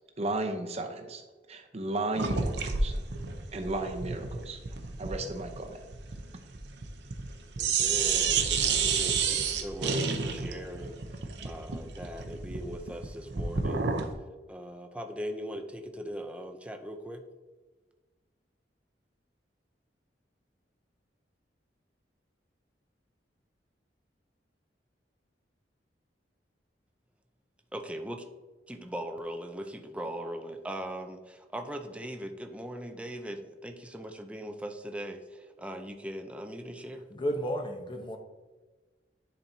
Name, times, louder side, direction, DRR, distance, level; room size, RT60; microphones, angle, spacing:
voice 1, 0.2-1.2 1.5-2.9 3.5-4.6 5.0-5.8, right 2 dB, 35° right, 4 dB, 0.8 m, -34 dB
sound 1, 2.2-7.3 7.6-14.1, right 5 dB, 75° right, 0.7 m, -30 dB
voice 2, 7.6-13.8 14.5-17.2 27.7-28.2 28.7-37.1, equal, 5° right, 5 dB, 0.5 m, -40 dB
voice 3, 37.1-38.2, equal, 30° left, 3 dB, 0.9 m, -32 dB
10.5 x 4.4 x 2.7 m, 1.3 s
head